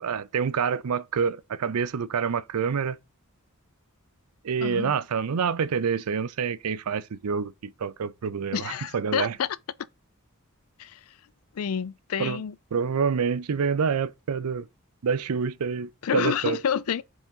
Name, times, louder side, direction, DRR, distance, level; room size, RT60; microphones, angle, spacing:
voice 1, 0.0-3.0 4.4-9.3 12.2-12.4 12.7-14.7 15.0-16.6, right 6 dB, 90° right, 0.5 m, -27 dB
voice 2, 4.6-4.9 8.5-9.5 10.8-11.0 11.5-12.5 16.0-17.0, left 8 dB, 70° left, 0.4 m, -28 dB
4.9 x 3.8 x 5.2 m
head